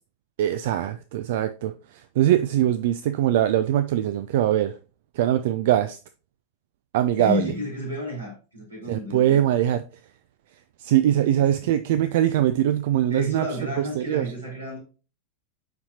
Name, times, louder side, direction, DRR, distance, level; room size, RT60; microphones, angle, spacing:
voice 1, 0.4-4.7 5.2-6.0 6.9-7.5 8.9-9.8 10.8-13.5 14.0-14.2, right 12 dB, 55° right, 0.3 m, -22 dB
voice 2, 7.2-9.4 11.1-11.8 13.1-14.8, left 1 dB, 80° right, 3.8 m, -32 dB
9.4 x 4.2 x 2.8 m
figure-of-eight pair, 90°, 0 cm